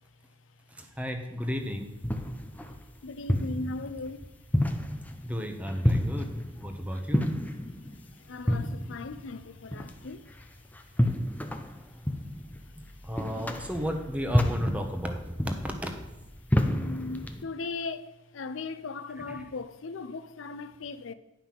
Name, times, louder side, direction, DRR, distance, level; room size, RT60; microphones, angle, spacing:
voice 1, 0.7-1.9 5.2-6.3 6.6-7.3 12.8-15.9 19.3-19.4, equal, 5° right, 1.1 m, -33 dB
sound 1, 1.5-17.4, left 1 dB, 10° left, 0.6 m, -31 dB
voice 2, 3.0-4.3 6.1-6.2 6.4-6.5 7.7-10.9 12.6-12.7 13.0-13.1 13.6-13.7 16.6-21.1, left 3 dB, 85° left, 0.6 m, -39 dB
10.5 x 5.6 x 5.9 m
head